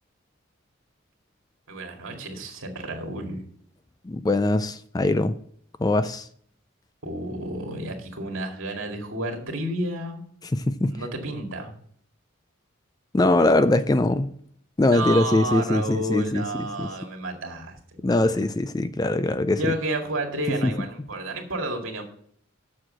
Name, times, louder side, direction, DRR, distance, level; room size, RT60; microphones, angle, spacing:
voice 1, 1.7-3.4 7.0-10.2 10.8-11.7 14.9-18.2 19.6-22.0, right 1 dB, 75° right, 2.1 m, -31 dB
voice 2, 4.0-5.4 5.8-6.3 10.5-10.9 13.1-14.3 14.8-16.4 16.8-16.9 18.0-19.6, left 2 dB, 20° left, 0.3 m, -22 dB
7.6 x 6.4 x 7.5 m
head